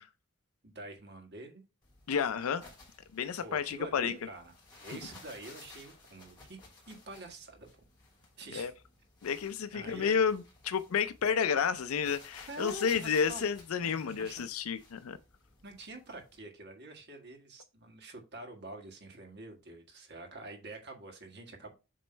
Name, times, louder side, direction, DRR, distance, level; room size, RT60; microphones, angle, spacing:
voice 1, 0.6-1.6 3.4-4.5 4.8-6.6 6.9-7.7 8.4-8.8 9.7-10.1 12.5-13.4 13.8-14.4 15.6-21.7, right 2 dB, 50° right, 1.6 m, -46 dB
sound 1, 1.8-16.4, left 3 dB, 20° left, 2.7 m, -56 dB
voice 2, 2.1-2.6 3.1-4.1 8.5-8.7 9.2-15.2, left 6 dB, 80° left, 0.4 m, -31 dB
7.6 x 3.1 x 4.4 m
head